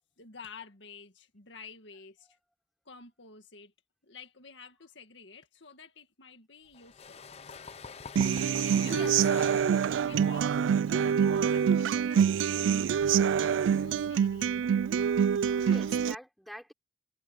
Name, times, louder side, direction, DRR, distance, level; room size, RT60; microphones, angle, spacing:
voice 1, 0.2-2.4 2.9-3.7 4.0-7.2 8.6-13.0 13.3-14.5 15.6-15.8, left 5 dB, 70° left, 2.0 m, -51 dB
sound 1, 6.7-12.2, left 5 dB, 35° left, 0.7 m, -46 dB
Human voice / Acoustic guitar, 8.2-16.1, right 7 dB, 90° right, 0.3 m, -26 dB
voice 2, 8.8-9.3 15.6-16.7, equal, ahead, 3.5 m, -44 dB
head